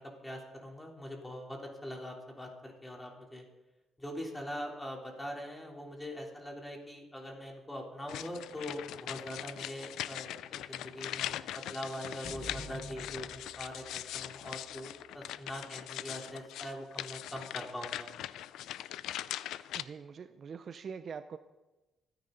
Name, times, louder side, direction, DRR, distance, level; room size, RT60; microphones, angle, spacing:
voice 1, 0.0-3.4 4.0-18.1, equal, 10° left, 0 dB, 3.5 m, -42 dB
sound 1, 8.1-19.8, left 12 dB, 85° left, 0.4 m, -41 dB
sound 2, 12.2-14.8, equal, 30° left, 4.6 m, -48 dB
voice 2, 19.7-21.4, right 6 dB, 50° right, 11 dB, 0.6 m, -43 dB
26.0 x 10.0 x 4.0 m, 1.1 s
cardioid pair, 90°, 0 cm